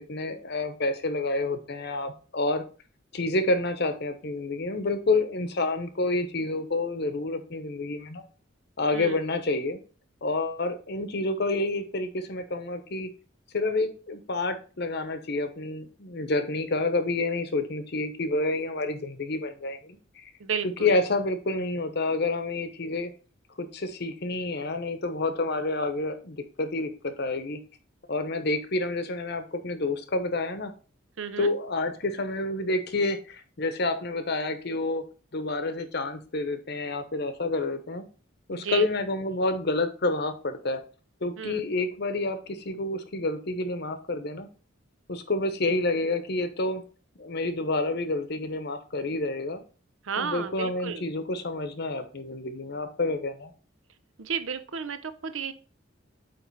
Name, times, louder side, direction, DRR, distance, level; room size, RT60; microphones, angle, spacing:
voice 1, 0.0-2.6 3.1-8.2 8.8-9.8 10.2-13.1 13.5-20.3 20.6-23.1 23.6-27.6 28.1-30.7 31.4-35.0 35.3-38.1 38.5-40.8 41.2-44.5 45.1-46.8 47.2-49.6 50.2-53.5, left 2 dB, 55° left, 9 dB, 0.9 m, -29 dB
voice 2, 20.4-21.0 31.2-31.5 38.5-38.9 41.4-41.6 50.0-51.1 54.2-55.5, right 6 dB, 75° right, 10 dB, 0.7 m, -32 dB
8.6 x 3.2 x 4.6 m, 0.37 s
head